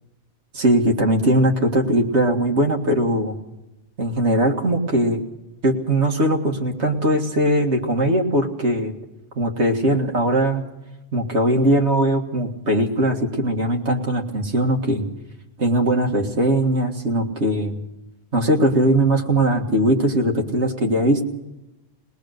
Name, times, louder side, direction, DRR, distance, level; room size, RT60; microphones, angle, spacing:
voice 1, 0.5-3.4 4.0-5.2 5.6-8.9 9.4-10.6 11.1-15.1 15.6-17.8 18.3-21.2, right 1 dB, 75° right, 1 dB, 2.2 m, -20 dB
21.0 x 20.0 x 6.6 m, 0.97 s
omnidirectional pair, 1.2 m